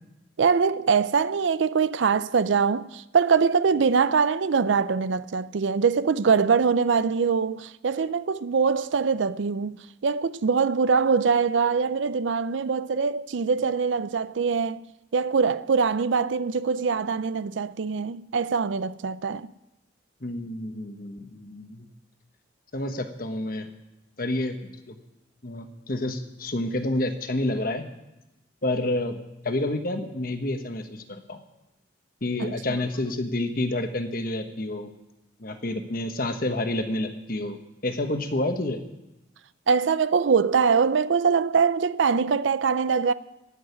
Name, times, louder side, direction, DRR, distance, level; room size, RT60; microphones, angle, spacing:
voice 1, 0.4-14.9 15.1-19.5 32.4-32.8 39.7-43.1, right 5 dB, 80° right, 0.5 m, -23 dB
voice 2, 20.2-21.9 22.7-23.7 24.2-25.0 25.4-27.8 28.6-29.2 29.4-31.4 32.2-34.9 35.4-37.6 37.8-38.8, left 1 dB, 50° left, 1.2 m, -29 dB
15.5 x 6.4 x 9.7 m
head